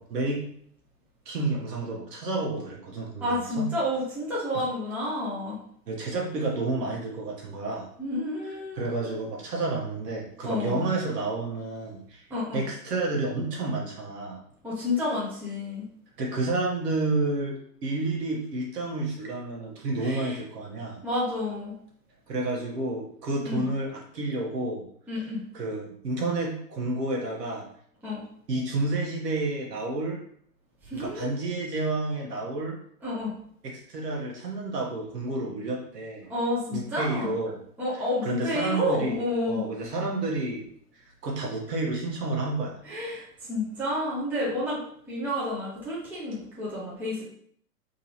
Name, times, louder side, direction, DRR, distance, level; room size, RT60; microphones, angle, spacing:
voice 1, 0.1-0.4 1.2-3.7 5.9-7.9 8.7-12.2 12.5-14.4 16.2-21.0 22.3-24.8 25.5-27.7 28.5-30.2 30.9-32.8 33.6-36.3 36.7-37.6 38.2-39.2 39.5-40.6 40.9-42.8, right 2 dB, 80° right, -2 dB, 1.1 m, -30 dB
voice 2, 3.2-5.6 8.0-9.1 10.4-10.8 12.3-12.6 14.6-15.8 20.0-20.4 21.0-21.7 23.4-23.6 25.1-25.4 28.0-28.2 30.8-31.3 33.0-33.3 36.3-37.3 37.8-39.6 42.8-44.8 45.1-47.2, left 1 dB, 5° right, -8 dB, 0.8 m, -30 dB
3.7 x 2.9 x 2.8 m, 0.63 s
hypercardioid pair, 120°, 48 cm